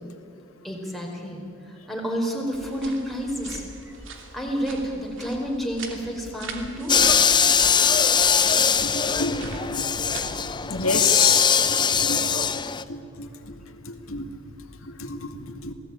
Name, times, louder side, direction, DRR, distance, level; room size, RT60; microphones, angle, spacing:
voice 1, 0.6-3.6 4.3-7.1, equal, ahead, -1 dB, 4.4 m, -30 dB
sound 1, 2.5-10.6, right 3 dB, 60° right, 2.9 m, -42 dB
sound 2, 6.9-12.8, left 6 dB, 20° left, 0.7 m, -21 dB
voice 2, 8.6-14.3 14.7-15.7, left 5 dB, 75° left, 6 dB, 2.2 m, -30 dB
27.5 x 18.5 x 9.0 m, 2.7 s
head